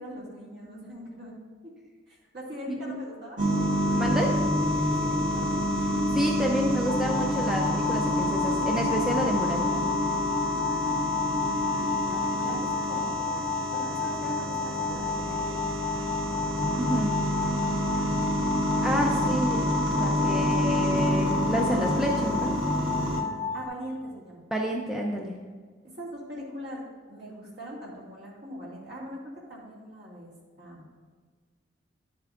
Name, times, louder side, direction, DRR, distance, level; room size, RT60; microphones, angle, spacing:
voice 1, 0.0-1.4 2.1-3.4 4.8-5.5 10.7-11.5 12.0-13.4 13.7-15.6 17.5-18.1 18.9-19.2 23.2-24.4 25.8-26.8 27.1-29.2 29.5-30.9, equal, 60° right, -5 dB, 2.3 m, -42 dB
voice 2, 2.7-3.0 3.9-4.3 6.1-9.7 16.8-17.1 18.8-22.5 24.5-25.4, equal, 5° right, -1 dB, 0.5 m, -29 dB
sound 1, 3.4-23.2, equal, 85° right, 1.1 m, -27 dB
sound 2, 6.9-23.7, left 5 dB, 40° left, 1.6 m, -33 dB
10.5 x 7.6 x 2.5 m, 1.5 s
head